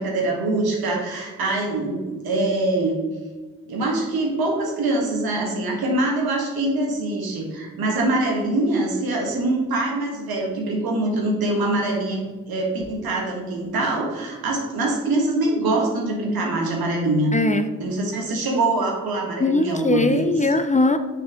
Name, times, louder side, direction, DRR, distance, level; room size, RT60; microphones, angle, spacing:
voice 1, 0.0-3.0 3.7-12.2 12.5-17.3 17.8-20.2, right 2 dB, 80° right, 0 dB, 1.5 m, -24 dB
voice 2, 17.3-17.7 19.4-21.0, left 3 dB, 20° left, 9 dB, 0.4 m, -20 dB
6.8 x 4.4 x 3.7 m, 1.3 s
supercardioid pair, 50°, 36 cm